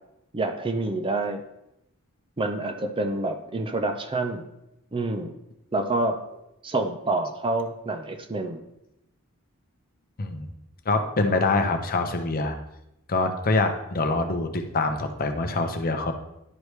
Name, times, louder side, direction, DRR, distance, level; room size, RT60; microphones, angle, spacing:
voice 1, 0.3-1.4 2.4-4.4 4.9-5.3 5.7-6.2 6.6-8.6, right 2 dB, 25° right, 7 dB, 0.5 m, -27 dB
voice 2, 10.9-12.6 13.1-16.1, left 3 dB, 40° left, 6 dB, 0.7 m, -25 dB
11.0 x 4.8 x 3.2 m, 0.85 s
head